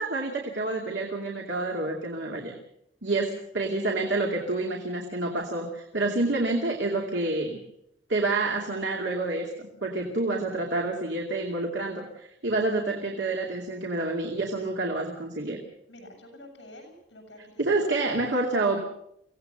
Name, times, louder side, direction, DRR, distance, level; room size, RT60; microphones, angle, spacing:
voice 1, 0.0-2.5 3.0-7.6 8.1-15.6 17.6-18.8, right 2 dB, 70° right, 1 dB, 2.5 m, -28 dB
voice 2, 15.9-18.1, left 1 dB, 75° left, 4 dB, 7.7 m, -47 dB
24.5 x 17.5 x 6.8 m, 0.78 s
head